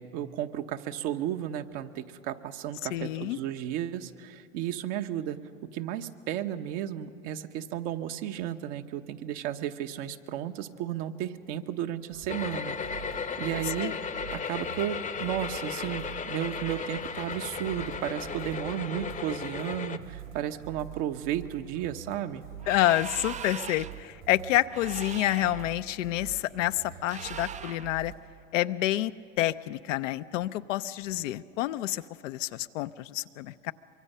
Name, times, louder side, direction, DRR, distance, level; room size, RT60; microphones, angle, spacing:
voice 1, 0.0-5.4 5.7-13.9 14.3-22.4, right 11 dB, 65° right, 7 dB, 1.2 m, -34 dB
voice 2, 2.9-3.4 13.8-13.9 22.7-28.1 28.5-33.7, left 15 dB, 75° left, 12 dB, 0.7 m, -28 dB
sound 1, 12.1-28.2, right 11 dB, 85° right, 5.6 m, -46 dB
sound 2, 12.3-20.0, left 6 dB, 20° left, 0.8 m, -35 dB
sound 3, 22.6-24.1 24.7-25.7 27.0-28.0, right 7 dB, 20° right, 0.4 m, -40 dB
24.0 x 23.5 x 5.6 m, 2.7 s
hypercardioid pair, 90°, 38 cm